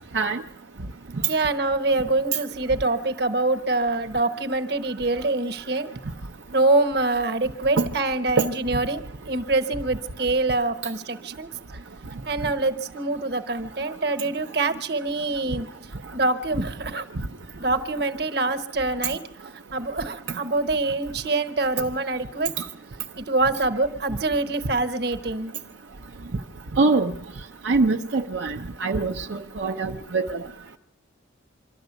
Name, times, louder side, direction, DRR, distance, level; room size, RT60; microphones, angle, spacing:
voice 1, 1.3-5.9 6.5-11.5 12.2-15.7 16.1-17.1 17.6-19.2 19.7-22.5 23.2-25.5, right 2 dB, 55° right, 1.2 m, -25 dB
voice 2, 26.8-27.1 27.6-30.4, right 3 dB, 80° right, 0.7 m, -23 dB
25.0 x 13.0 x 8.1 m
head